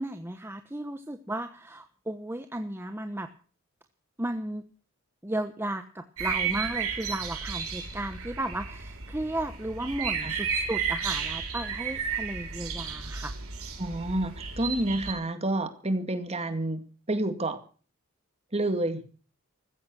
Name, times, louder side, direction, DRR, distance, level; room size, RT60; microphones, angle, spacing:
voice 1, 0.0-3.3 4.2-4.6 5.2-13.4, right 1 dB, 10° right, 7 dB, 1.0 m, -34 dB
sound 1, 6.2-15.1, right 6 dB, 75° right, 6.0 m, -33 dB
voice 2, 13.8-17.6 18.5-19.0, right 1 dB, 30° right, 8 dB, 2.3 m, -29 dB
15.0 x 14.5 x 6.3 m, 0.40 s
head